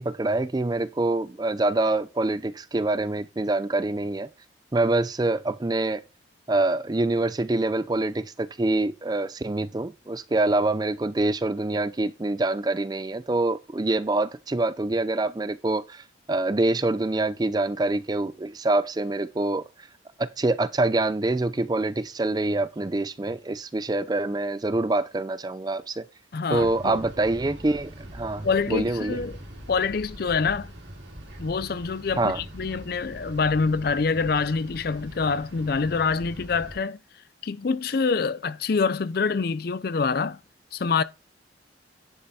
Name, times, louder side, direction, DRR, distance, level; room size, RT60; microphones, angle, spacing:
voice 1, 0.0-4.3 4.7-6.0 6.5-19.6 20.2-26.0 26.5-29.2 32.2-32.4, right 2 dB, 20° right, 0.4 m, -25 dB
voice 2, 26.3-27.0 28.4-29.4 29.7-30.7 31.4-37.0 37.4-40.4 40.7-41.0, left 5 dB, 50° left, 0.4 m, -26 dB
sound 1, 26.5-36.8, equal, 65° right, 3.1 m, -42 dB
10.0 x 5.5 x 4.1 m
head